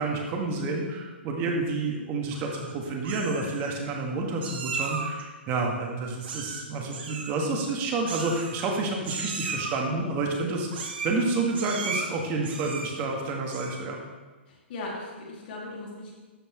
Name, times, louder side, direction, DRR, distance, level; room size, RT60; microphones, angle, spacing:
voice 1, 0.0-14.0, right 3 dB, 30° right, 1 dB, 1.6 m, -29 dB
Meow, 2.3-2.7 3.0-3.7 4.4-5.2 6.2-6.6 6.9-7.3 8.1-8.8 9.0-9.8 10.7-11.2 11.5-12.1 12.4-13.0 13.4-13.9, right 4 dB, 60° right, 1.2 m, -35 dB
voice 2, 14.5-16.1, left 2 dB, 55° left, -3 dB, 2.6 m, -38 dB
12.5 x 5.3 x 3.1 m, 1.3 s
hypercardioid pair, 125°, 6 cm